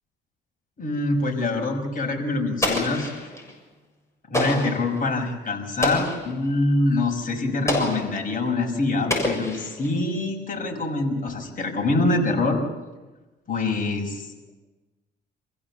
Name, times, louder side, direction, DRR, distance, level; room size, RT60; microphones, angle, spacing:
voice 1, 0.8-3.1 4.3-12.6 13.5-14.3, left 2 dB, 45° left, 2 dB, 5.8 m, -25 dB
Explosion, 2.6-3.5 4.3-4.9 5.8-6.4 7.7-8.2 9.1-10.0, left 1 dB, 15° left, 6.9 m, -26 dB
27.5 x 15.5 x 7.4 m, 1.1 s
cardioid pair, 90°, 20 cm